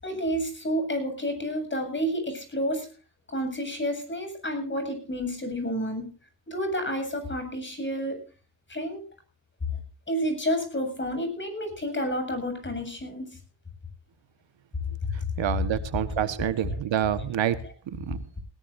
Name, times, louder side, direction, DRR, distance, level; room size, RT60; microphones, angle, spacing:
voice 1, 0.0-2.9 3.3-6.0 6.5-8.2 8.7-9.0 10.1-13.3 16.4-16.8, equal, 25° left, 7 dB, 7.9 m, -30 dB
voice 2, 15.4-17.6 18.1-18.2, right 10 dB, 80° right, 12 dB, 1.6 m, -27 dB
20.5 x 18.0 x 2.7 m, 0.37 s
cardioid pair, 105°, 44 cm